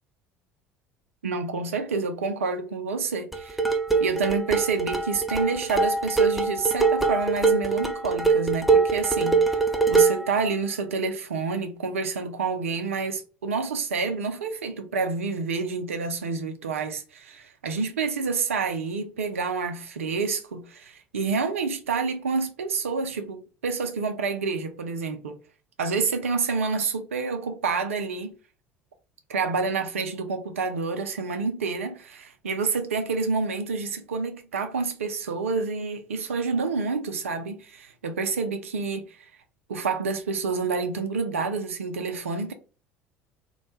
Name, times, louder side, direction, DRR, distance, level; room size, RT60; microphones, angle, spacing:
voice 1, 1.2-3.6 4.0-9.6 9.9-25.4 25.8-28.3 29.3-39.2 39.7-42.5, right 4 dB, 75° right, 0.4 m, -28 dB
sound 1, 3.3-10.3, right 4 dB, ahead, 0.4 m, -23 dB
2.2 x 2.1 x 2.7 m
figure-of-eight pair, 65°, 7 cm